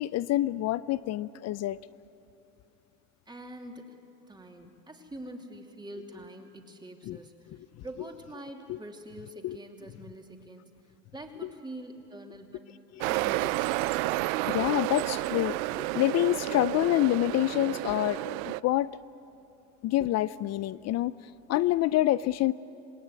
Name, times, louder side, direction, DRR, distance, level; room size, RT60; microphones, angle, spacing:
voice 1, 0.0-1.8 7.0-7.2 7.5-7.6 8.7-8.8 9.4-9.6 12.9-13.0 14.5-18.9 19.8-21.1 21.5-22.5, left 15 dB, 40° left, 17 dB, 0.5 m, -27 dB
voice 2, 3.3-4.0 4.2-10.7 11.1-12.7 13.1-13.8, right 1 dB, 10° right, 2 dB, 2.8 m, -45 dB
sound 1, 13.0-18.6, right 19 dB, 75° right, 0.6 m, -31 dB
27.0 x 18.5 x 9.5 m, 2.8 s
supercardioid pair, 115°, 40 cm